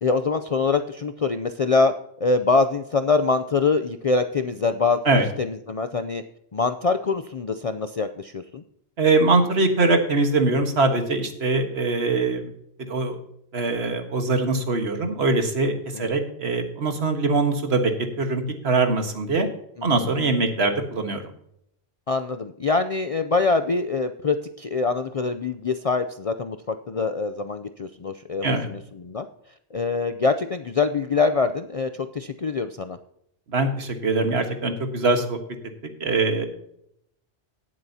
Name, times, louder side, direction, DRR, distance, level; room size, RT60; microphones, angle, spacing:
voice 1, 0.0-5.0 5.4-6.2 6.5-8.6 15.9-16.1 19.8-20.1 22.1-29.3 29.7-33.0, left 4 dB, 50° left, 8 dB, 0.4 m, -24 dB
voice 2, 9.0-12.5 12.8-13.2 13.5-17.9 18.2-19.5 19.8-21.2 28.4-28.7 33.5-35.4 36.0-36.5, right 3 dB, 65° right, 6 dB, 1.7 m, -22 dB
18.0 x 7.7 x 2.8 m, 0.73 s
omnidirectional pair, 1.2 m